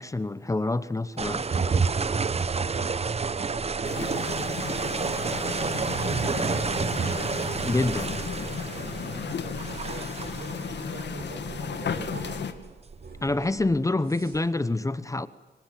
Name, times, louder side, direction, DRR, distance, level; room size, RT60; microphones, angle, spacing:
voice 1, 0.0-1.6 7.6-8.2 13.2-15.3, left 2 dB, 15° left, 1.0 m, -27 dB
sound 1, 1.2-13.7, right 5 dB, 35° right, 0.8 m, -30 dB
voice 2, 2.5-4.4 5.5-6.5 8.7-12.1, right 3 dB, 75° right, 7.2 m, -43 dB
sound 2, 3.8-12.5, left 7 dB, 70° left, 2.3 m, -34 dB
sound 3, 8.8-12.6 12.9-14.5, right 4 dB, 55° right, 7.5 m, -46 dB
26.0 x 24.5 x 7.6 m
wide cardioid pair, 110°, 19 cm